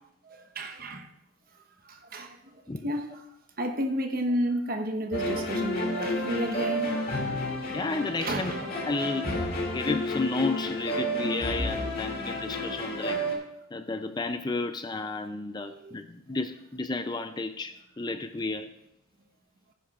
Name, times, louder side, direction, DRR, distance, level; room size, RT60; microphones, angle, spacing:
voice 1, 0.5-1.1 1.9-2.4 2.8-3.0 3.6-7.0 8.2-8.7 15.6-15.9, equal, 45° right, 1.1 m, -31 dB
sound 1, 5.1-13.3, left 1 dB, 45° left, 2.5 m, -31 dB
voice 2, 7.7-8.5 8.8-9.5 9.7-13.2 13.7-18.7, left 3 dB, 20° left, 0.4 m, -32 dB
16.0 x 10.0 x 2.4 m
head